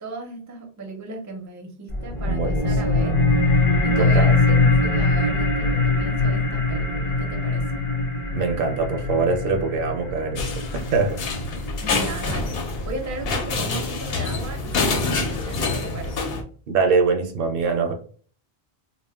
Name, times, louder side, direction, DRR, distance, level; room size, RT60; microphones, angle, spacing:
voice 1, 0.0-3.2 3.8-7.8 11.8-16.1, right 2 dB, 25° right, 2 dB, 0.4 m, -36 dB
sound 1, 1.9-12.9, left 3 dB, 40° left, 0.6 m, -22 dB
voice 2, 2.3-2.7 4.0-4.3 8.3-11.2 16.7-17.9, right 4 dB, 70° right, 4 dB, 0.7 m, -23 dB
sound 2, 10.4-16.4, left 3 dB, 75° left, 0.8 m, -26 dB
2.1 x 2.1 x 3.3 m, 0.43 s
omnidirectional pair, 1.0 m